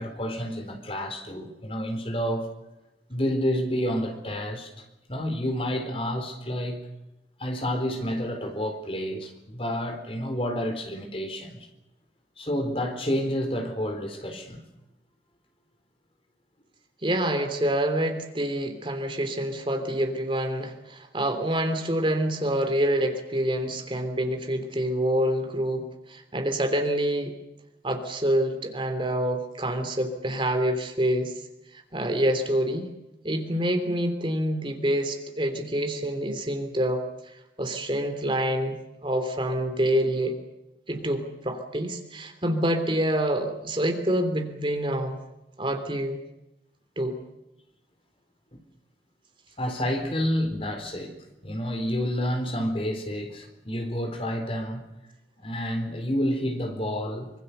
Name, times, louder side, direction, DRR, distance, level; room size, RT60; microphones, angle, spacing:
voice 1, 0.0-2.5 3.1-6.9 7.4-11.7 12.4-14.6 41.1-41.2 48.5-48.6 49.6-51.1 51.4-54.8 55.4-57.3, equal, 35° left, 6 dB, 4.1 m, -29 dB
voice 2, 17.0-27.3 27.8-31.3 31.7-32.9 33.2-40.3 40.9-45.2 45.6-46.2 47.0-47.2, right 1 dB, 30° right, 6 dB, 3.2 m, -27 dB
25.5 x 25.0 x 6.9 m, 0.92 s
head